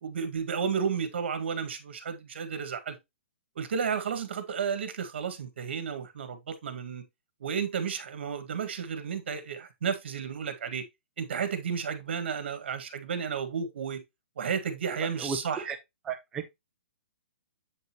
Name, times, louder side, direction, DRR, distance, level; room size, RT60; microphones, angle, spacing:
voice 1, 0.0-3.0 3.6-7.0 7.4-10.8 11.2-14.0 14.4-15.7, right 6 dB, 60° right, 1.8 m, -32 dB
voice 2, 15.2-15.8 16.0-16.5, right 6 dB, 10° right, 0.4 m, -34 dB
7.9 x 5.4 x 3.0 m
hypercardioid pair, 170°, 7 cm